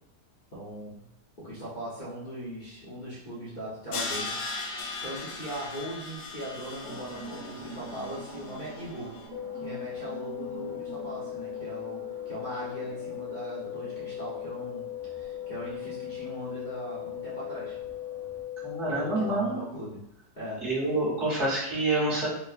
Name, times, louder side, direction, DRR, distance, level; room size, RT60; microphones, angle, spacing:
voice 1, 0.5-1.1 1.4-4.3 5.0-9.1 9.5-17.8 18.9-20.0 20.3-20.6, equal, 40° left, -10 dB, 0.7 m, -39 dB
Crash cymbal, 3.9-9.0, left 3 dB, 70° left, 1.0 m, -38 dB
sound 1, 6.8-18.4, right 2 dB, 30° right, 1.3 m, -46 dB
sound 2, 9.3-19.3, left 12 dB, 85° left, 1.3 m, -38 dB
voice 2, 18.6-19.6 20.6-22.3, right 2 dB, 45° right, -8 dB, 1.3 m, -27 dB
4.1 x 2.1 x 2.4 m, 0.80 s
omnidirectional pair, 1.9 m